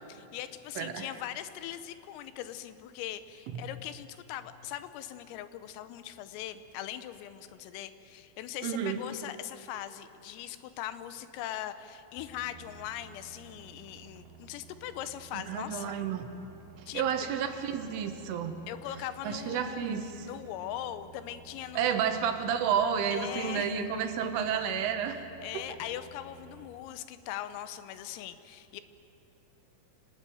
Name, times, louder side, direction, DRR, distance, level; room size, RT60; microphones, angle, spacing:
voice 1, 0.1-16.0 16.9-17.3 18.7-22.0 23.1-23.7 25.4-28.8, left 12 dB, 85° left, 12 dB, 3.7 m, -40 dB
voice 2, 0.8-1.1 3.5-3.6 8.6-9.0 15.3-16.3 17.0-18.6 19.2-20.3 21.8-25.2 25.5-25.6, right 8 dB, 75° right, 7 dB, 3.8 m, -31 dB
sound 1, 12.2-26.7, right 6 dB, 50° right, 5.2 m, -54 dB
26.5 x 19.0 x 9.3 m, 2.9 s
omnidirectional pair, 5.9 m